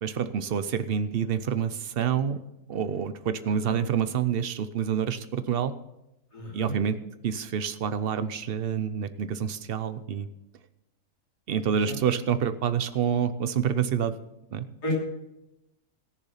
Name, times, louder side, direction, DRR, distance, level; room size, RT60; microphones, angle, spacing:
voice 1, 0.0-2.4 2.7-5.7 6.5-7.0 7.2-10.3 11.5-14.1 14.5-14.7, right 8 dB, 55° right, 12 dB, 0.6 m, -27 dB
voice 2, 6.3-6.7 11.7-12.0 14.8-14.9, equal, 90° left, -3 dB, 3.7 m, -33 dB
17.5 x 6.8 x 5.7 m, 0.90 s
omnidirectional pair, 1.7 m